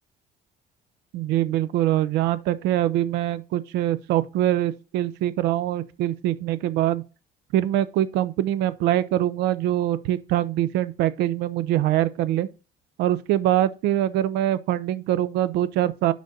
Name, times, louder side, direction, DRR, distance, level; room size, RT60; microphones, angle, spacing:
voice 1, 1.1-7.0 7.5-12.5 13.0-16.1, right 13 dB, 90° right, 0.5 m, -23 dB
5.1 x 3.8 x 5.9 m
cardioid pair, 110°, 17 cm